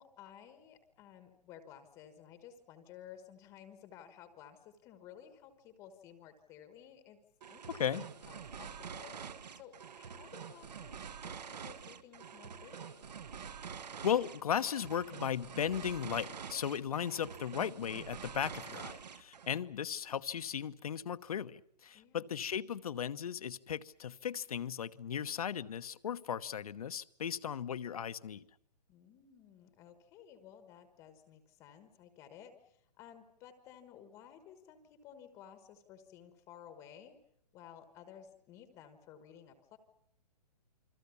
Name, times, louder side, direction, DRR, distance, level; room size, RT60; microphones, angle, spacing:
voice 1, 0.0-7.2 7.5-13.1 21.9-22.3 28.9-37.2 37.5-39.8, left 9 dB, 15° left, 10 dB, 1.3 m, -55 dB
sound 1, 7.4-19.6, right 7 dB, 75° right, 1.9 m, -47 dB
voice 2, 7.7-8.1 14.0-28.4, left 8 dB, 60° left, 14 dB, 1.1 m, -36 dB
29.0 x 23.0 x 7.1 m, 0.70 s
hypercardioid pair, 175°, 21 cm